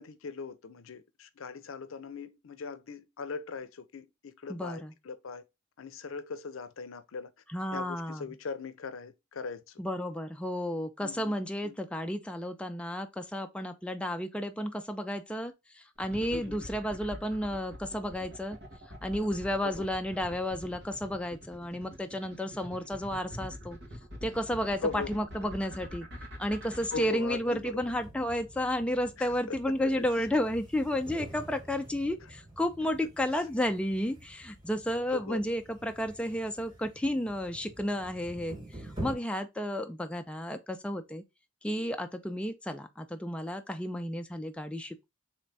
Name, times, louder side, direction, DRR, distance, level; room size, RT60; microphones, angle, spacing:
voice 1, 0.0-5.4 5.8-7.3 7.7-9.8 11.0-11.4 11.6-11.8 16.3-16.6 19.6-19.9 24.8-25.1 26.9-27.8 29.2-29.9 35.1-35.4, left 4 dB, 80° left, 0.5 m, -40 dB
voice 2, 4.5-4.9 7.5-8.3 9.8-18.6 19.0-23.8 24.2-26.1 26.4-41.2 41.6-45.1, left 1 dB, 5° left, 0.4 m, -32 dB
sound 1, 16.0-27.1, equal, 60° right, 1.6 m, -44 dB
sound 2, 26.5-39.1, right 1 dB, 20° right, 1.5 m, -47 dB
3.9 x 3.1 x 3.3 m
head